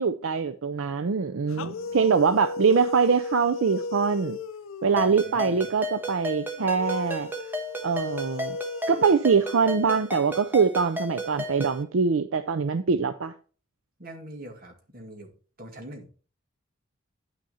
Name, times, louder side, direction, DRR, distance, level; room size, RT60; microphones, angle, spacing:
voice 1, 0.0-4.4 4.8-7.3 7.8-8.6 8.9-13.3, right 5 dB, 75° right, 0.5 m, -23 dB
sound 1, 1.5-5.2 6.6-10.2, left 3 dB, 80° left, 0.5 m, -36 dB
voice 2, 1.5-2.2 4.9-5.6 14.0-15.3 15.6-16.1, right 1 dB, 45° right, 2.1 m, -44 dB
Ringtone, 5.0-11.8, equal, 10° right, 1.2 m, -34 dB
9.8 x 6.3 x 4.2 m
head